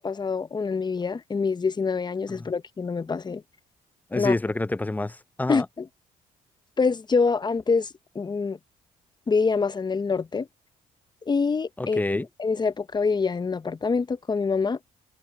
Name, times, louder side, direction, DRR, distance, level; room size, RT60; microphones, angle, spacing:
voice 1, 0.0-3.4 4.1-4.3 5.5-5.9 6.8-7.9 8.1-8.6 9.3-10.5 11.3-14.8, left 4 dB, 25° left, 0.8 m, -25 dB
voice 2, 4.1-5.7 11.8-12.3, left 2 dB, 10° left, 0.5 m, -27 dB
supercardioid pair, 75°, 16 cm